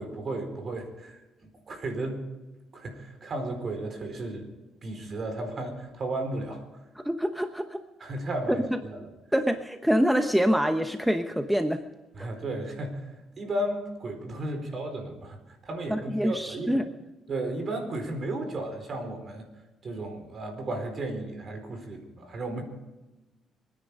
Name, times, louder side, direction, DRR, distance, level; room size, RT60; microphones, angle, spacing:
voice 1, 0.0-2.2 2.7-4.5 4.8-6.6 8.0-9.0 12.1-13.1 13.4-15.4 15.6-16.8 17.3-19.5 19.8-22.6, right 1 dB, 45° right, 5 dB, 4.6 m, -34 dB
voice 2, 7.0-7.8 8.7-8.8 9.3-11.8 12.2-12.3 15.9-16.9, equal, 5° right, 7 dB, 1.0 m, -25 dB
25.5 x 10.0 x 5.4 m, 1.1 s
cardioid pair, 90°, 0 cm